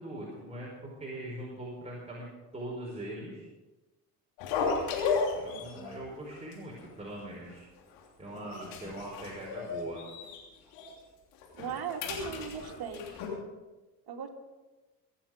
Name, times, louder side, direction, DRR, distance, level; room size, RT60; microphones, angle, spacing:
voice 1, 0.0-2.3 2.5-3.5 5.4-7.6 8.2-10.0, right 1 dB, 15° right, -4 dB, 5.1 m, -41 dB
sound 1, 4.4-6.0 6.3-6.5 6.8-6.9 7.5-8.0 8.3-10.4 10.7-10.9 11.3-13.3, left 5 dB, 80° left, 3.3 m, -34 dB
voice 2, 11.5-13.1 14.1-14.3, right 6 dB, 50° right, 3 dB, 2.7 m, -37 dB
23.5 x 8.9 x 5.2 m, 1.2 s
hypercardioid pair, 55°, 47 cm